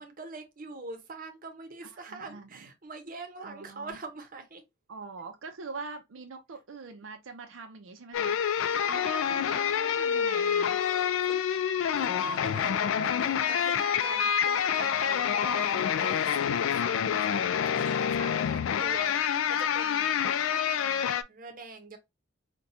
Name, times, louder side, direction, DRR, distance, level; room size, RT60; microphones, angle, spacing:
voice 1, 0.0-4.6 8.7-9.5 10.8-17.4 17.7-19.1 19.5-22.0, right 3 dB, 45° right, 0.7 m, -44 dB
voice 2, 2.0-2.5 3.4-4.0 4.9-10.8, right 4 dB, 80° right, 0.5 m, -43 dB
sound 1, 8.1-21.2, left 8 dB, 85° left, 0.3 m, -27 dB
4.1 x 2.2 x 2.6 m
head